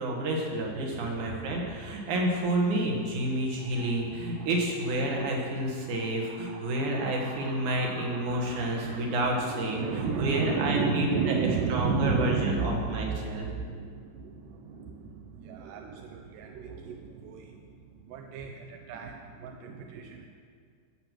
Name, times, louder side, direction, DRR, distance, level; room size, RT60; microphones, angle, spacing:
voice 1, 0.0-13.4, right 1 dB, 60° right, -1 dB, 2.9 m, -29 dB
voice 2, 6.5-9.2 9.5-17.5 18.1-20.3, right 5 dB, 75° right, 3 dB, 2.0 m, -33 dB
13.5 x 7.7 x 6.1 m, 2.1 s
omnidirectional pair, 4.2 m